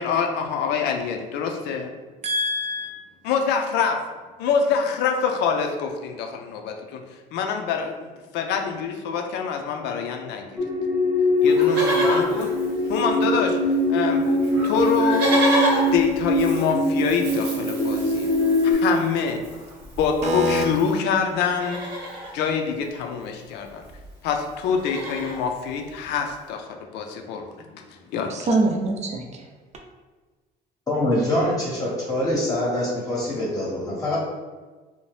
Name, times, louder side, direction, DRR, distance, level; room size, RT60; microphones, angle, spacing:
voice 1, 0.0-1.9 3.2-4.0 4.4-7.0 7.3-10.6 11.4-12.5 12.9-13.6 13.9-15.2 15.9-18.3 18.6-19.4 20.0-21.8 22.3-23.8 24.2-27.5 27.7-28.5, left 6 dB, 85° left, 4 dB, 0.4 m, -25 dB
voice 2, 2.2-2.9 20.2-20.6 28.3-29.4, right 1 dB, 40° right, 2 dB, 0.5 m, -24 dB
sound 1, 10.6-18.7, left 1 dB, 10° right, 0.8 m, -22 dB
Livestock farm animals working animals, 11.4-13.5 13.7-13.8 14.0-21.0 21.4-22.3 23.6-23.7 23.8-24.1 24.5-25.4 26.0-26.1, equal, 90° right, 0.8 m, -30 dB
voice 3, 30.9-34.2, left 1 dB, 20° left, -6 dB, 0.8 m, -24 dB
2.7 x 2.1 x 3.1 m, 1.3 s
cardioid pair, 110°, 17 cm